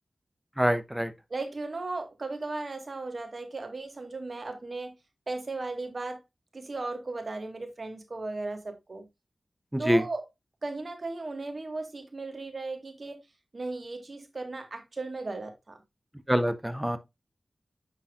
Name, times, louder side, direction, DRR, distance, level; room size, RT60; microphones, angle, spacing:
voice 1, 0.6-1.1 9.7-10.0 16.3-17.0, equal, 10° right, 0.9 m, -25 dB
voice 2, 1.3-4.9 5.3-6.2 6.5-9.1 9.8-10.2 10.6-13.2 13.5-15.8, right 3 dB, 55° right, 1.7 m, -36 dB
9.5 x 4.1 x 2.5 m
cardioid pair, 45°, 0 cm